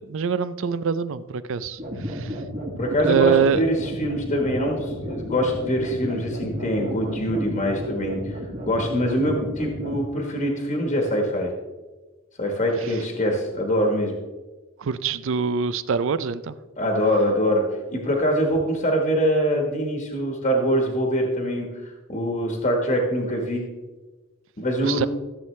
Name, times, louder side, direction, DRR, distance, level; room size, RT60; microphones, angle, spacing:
voice 1, 0.0-2.4 3.0-3.6 14.8-16.6 24.8-25.1, right 6 dB, 65° right, 15 dB, 0.5 m, -24 dB
sound 1, 1.8-10.0, equal, 40° right, 1.8 m, -33 dB
voice 2, 2.8-11.5 12.4-14.1 16.8-23.6 24.6-25.1, equal, 40° left, 1 dB, 1.4 m, -24 dB
14.0 x 7.5 x 3.2 m, 1.2 s
head